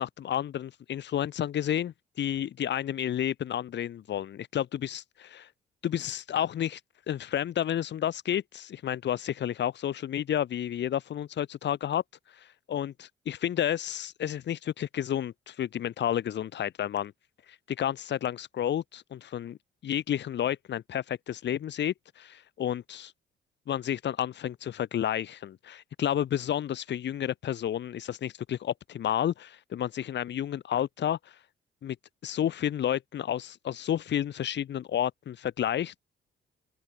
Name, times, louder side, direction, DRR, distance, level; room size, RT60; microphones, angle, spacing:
voice 1, 0.0-5.5 5.8-6.8 7.1-12.0 12.3-17.1 17.7-19.6 19.8-23.1 23.7-31.4 31.8-32.0 32.2-36.0, left 10 dB, 65° left, 1.9 m, -31 dB
open air
cardioid pair, 90°, 20 cm